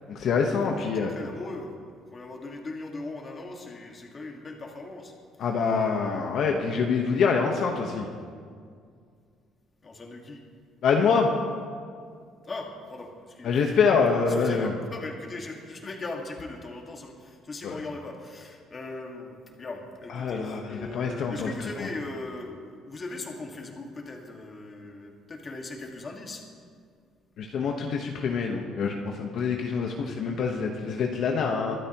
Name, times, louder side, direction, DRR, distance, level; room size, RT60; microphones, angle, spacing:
voice 1, 0.1-1.1 5.4-8.1 10.8-11.3 13.4-14.7 17.6-17.8 20.1-21.5 21.8-21.9 27.4-31.8, left 5 dB, 55° left, 1 dB, 1.2 m, -25 dB
voice 2, 0.7-5.1 9.8-10.4 12.4-13.5 14.3-26.4, left 2 dB, 25° left, 1 dB, 1.9 m, -39 dB
23.0 x 12.5 x 3.0 m, 2.1 s
cardioid pair, 140°, 0 cm